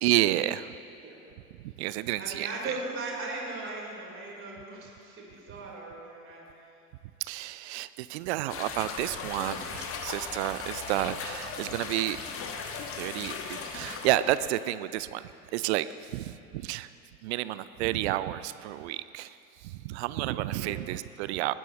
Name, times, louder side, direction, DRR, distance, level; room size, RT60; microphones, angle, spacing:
voice 1, 0.0-0.8 1.8-2.7 7.3-12.2 13.0-15.2 15.5-15.9 16.1-16.9 17.2-19.3 19.6-21.5, right 15 dB, 50° right, 15 dB, 0.5 m, -30 dB
voice 2, 2.2-6.4 20.5-20.8, right 3 dB, 30° right, -2 dB, 4.0 m, -38 dB
sound 1, 8.5-14.2, left 5 dB, 30° left, 1.3 m, -37 dB
20.5 x 15.0 x 3.0 m, 2.7 s
figure-of-eight pair, 80°, 44 cm